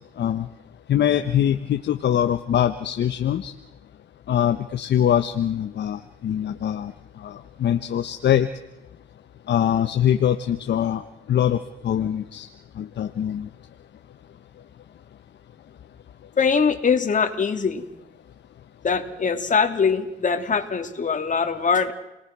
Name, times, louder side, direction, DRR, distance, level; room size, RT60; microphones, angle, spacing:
voice 1, 0.9-3.5 4.3-6.9 7.2-7.3 7.6-8.5 9.5-11.0 11.3-11.6 11.8-12.5 12.8-13.5, left 10 dB, 60° left, 8 dB, 1.2 m, -22 dB
voice 2, 16.4-17.9 18.8-21.9, left 5 dB, 40° left, 6 dB, 3.2 m, -22 dB
29.5 x 20.0 x 6.2 m, 0.93 s
cardioid pair, 90°, 20 cm